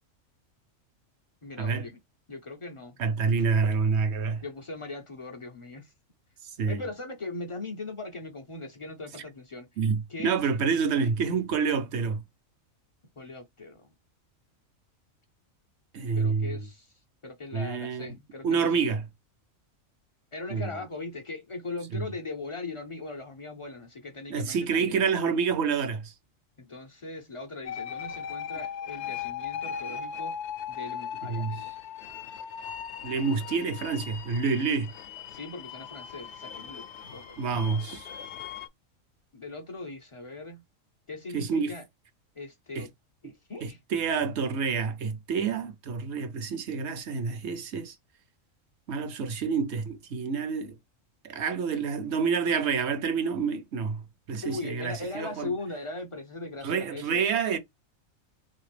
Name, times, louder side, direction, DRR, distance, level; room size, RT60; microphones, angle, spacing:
voice 1, 1.4-2.0 2.3-3.0 4.2-5.9 6.7-9.7 10.1-10.4 13.2-13.9 16.1-16.9 17.2-18.9 20.3-25.0 26.6-30.4 30.7-31.7 35.3-37.7 39.3-40.6 41.1-41.8 42.4-42.9 43.2-43.8 54.4-57.2, left 3 dB, 50° left, 0.4 m, -39 dB
voice 2, 3.0-4.4 6.6-6.8 9.8-12.2 15.9-16.7 17.5-18.1 18.4-19.0 20.5-20.7 21.9-22.0 24.3-26.1 31.3-31.7 33.0-34.9 37.4-38.1 41.3-41.7 42.7-42.9 43.6-47.9 48.9-50.8 51.2-54.0 54.3-55.5 56.6-57.6, right 5 dB, 60° right, 1.0 m, -28 dB
sound 1, 27.6-38.7, left 8 dB, 65° left, 0.8 m, -38 dB
3.1 x 2.9 x 3.2 m
omnidirectional pair, 1.4 m